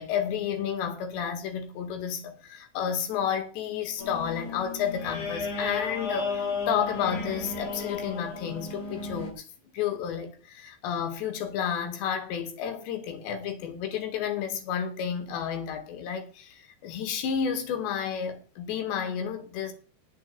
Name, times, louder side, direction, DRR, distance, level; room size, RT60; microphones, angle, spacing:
voice 1, 0.0-9.4 9.7-19.7, left 8 dB, 75° left, 4.1 m, -31 dB
sound 1, 4.0-9.3, left 4 dB, 50° left, 3.5 m, -34 dB
8.6 x 7.3 x 8.4 m
omnidirectional pair, 5.1 m